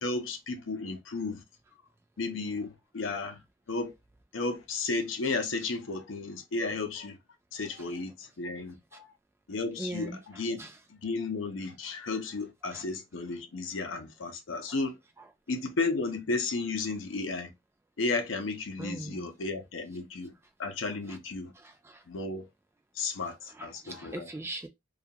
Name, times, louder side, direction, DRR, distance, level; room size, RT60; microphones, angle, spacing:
voice 1, 0.0-1.4 2.2-3.4 3.7-3.9 4.3-7.2 7.5-9.1 9.5-10.6 10.9-15.0 15.5-17.5 18.0-20.3 20.6-21.5 22.1-22.5 23.0-24.3, left 3 dB, 85° left, 0.6 m, -33 dB
voice 2, 9.8-10.2 10.6-10.7 12.7-12.8 18.8-19.3 21.6-22.0 23.6-24.7, right 1 dB, 15° right, 0.3 m, -40 dB
2.3 x 2.2 x 2.7 m
head